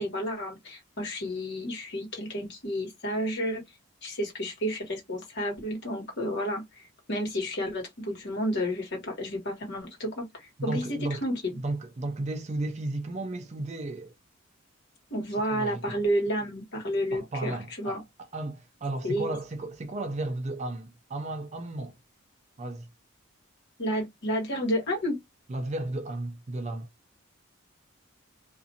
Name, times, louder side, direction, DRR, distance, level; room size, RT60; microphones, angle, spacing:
voice 1, 0.0-3.6 4.0-6.8 7.1-11.6 15.1-18.0 19.0-19.3 23.8-25.2, equal, 55° left, 1.4 m, -31 dB
voice 2, 10.6-11.3 11.6-14.1 15.5-16.0 17.1-18.0 18.3-21.9 22.6-22.9 25.5-26.9, right 2 dB, 30° right, 0.4 m, -34 dB
2.5 x 2.4 x 2.7 m
head